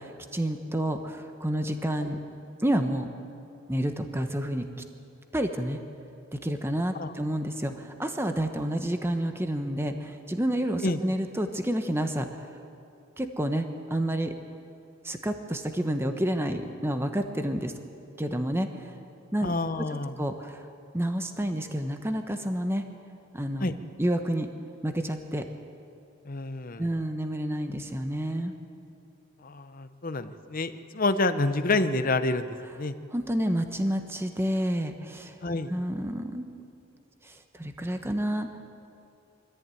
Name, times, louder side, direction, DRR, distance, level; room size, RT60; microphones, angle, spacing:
voice 1, 0.0-2.2 2.6-3.1 3.7-4.6 5.3-5.8 6.3-12.5 13.2-14.3 15.0-17.7 18.2-18.9 19.3-19.9 20.2-20.7 20.9-22.8 23.3-23.7 24.0-24.5 24.8-25.5 26.8-28.5 33.1-35.4 35.7-36.5 37.2-38.5, right 1 dB, 10° right, 6 dB, 0.9 m, -29 dB
voice 2, 19.4-20.1 23.6-23.7 26.3-26.8 29.4-32.5 32.8-32.9 35.4-35.7, left 2 dB, 40° left, 9 dB, 0.8 m, -28 dB
23.0 x 14.0 x 9.1 m, 2.6 s
head